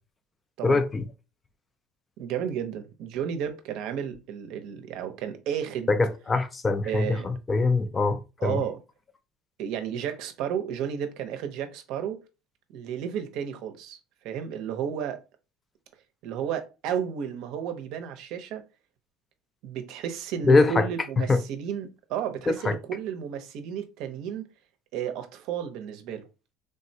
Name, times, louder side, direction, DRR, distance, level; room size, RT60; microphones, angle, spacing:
voice 1, 0.6-1.1 5.9-8.6 20.5-20.9 21.3-21.4 22.5-22.8, left 3 dB, 20° left, 0.3 m, -23 dB
voice 2, 2.2-5.9 6.8-7.3 8.4-8.8 9.6-12.2 12.7-14.0 14.2-15.2 16.2-18.6 19.6-24.5 24.9-26.3, right 8 dB, 70° right, 0.6 m, -32 dB
3.5 x 2.1 x 2.7 m
cardioid pair, 115°, 0 cm